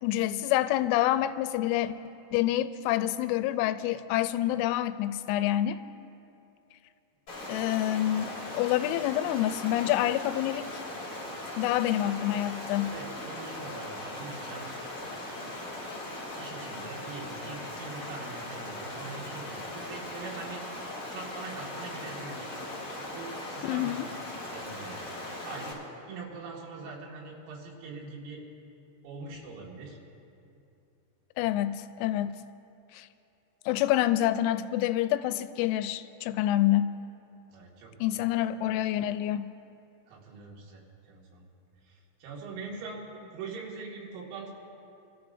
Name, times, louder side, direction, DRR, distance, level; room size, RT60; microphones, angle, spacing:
voice 1, 0.0-1.9 2.3-5.8 7.5-10.8 11.6-12.9 23.6-24.1 31.4-32.3 32.9-33.1 33.7-36.9 38.0-39.5, left 13 dB, 90° left, 12 dB, 3.3 m, -27 dB
Stream, 7.3-25.7, left 1 dB, 30° left, 2.4 m, -39 dB
voice 2, 12.9-14.9 16.4-22.5 23.1-24.0 24.4-25.1 25.4-25.8 26.1-28.4 29.0-30.0 37.5-38.3 40.1-41.5 41.9-44.5, right 4 dB, 85° right, -3 dB, 4.8 m, -43 dB
26.0 x 14.0 x 2.6 m, 2.7 s
omnidirectional pair, 6.0 m